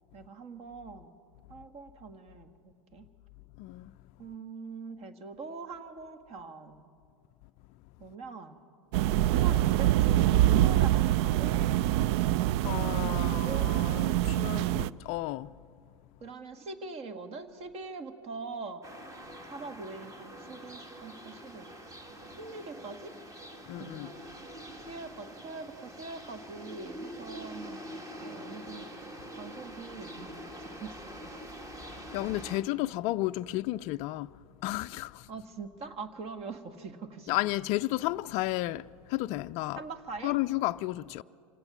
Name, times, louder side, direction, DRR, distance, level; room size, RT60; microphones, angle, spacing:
voice 1, 0.1-1.1 1.5-3.1 4.2-6.9 8.0-8.6 9.3-11.6 12.9-13.7 16.2-18.8 19.4-21.6 22.4-23.1 23.8-24.0 24.9-28.0 28.2-28.9 29.3-30.9 35.3-37.3 39.8-40.4, right 4 dB, 35° right, 1.6 m, -43 dB
voice 2, 3.6-3.9 12.3-12.4 12.6-15.5 23.7-24.1 31.9-34.3 34.6-35.3 37.3-39.8 40.2-41.2, left 17 dB, 40° left, 0.4 m, -33 dB
sound 1, 8.9-14.9, right 13 dB, 50° right, 0.4 m, -25 dB
sound 2, 18.8-32.6, equal, 20° right, 2.1 m, -45 dB
26.0 x 17.5 x 6.0 m
hypercardioid pair, 90°, 17 cm